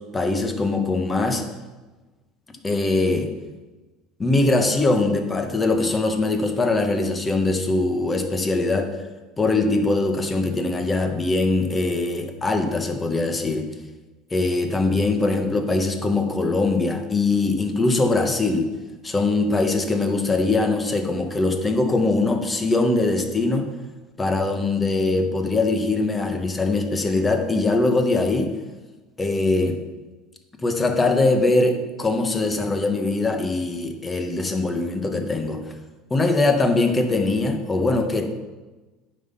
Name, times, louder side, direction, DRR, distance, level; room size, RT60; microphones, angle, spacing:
voice 1, 0.1-1.4 2.6-3.3 4.2-9.0 9.4-13.7 14.3-18.7 19.0-23.7 24.2-28.5 29.2-29.8 30.6-35.6 36.1-38.3, left 2 dB, 15° left, 5 dB, 1.1 m, -22 dB
9.3 x 5.5 x 5.7 m, 1.2 s
supercardioid pair, 130°, 0 cm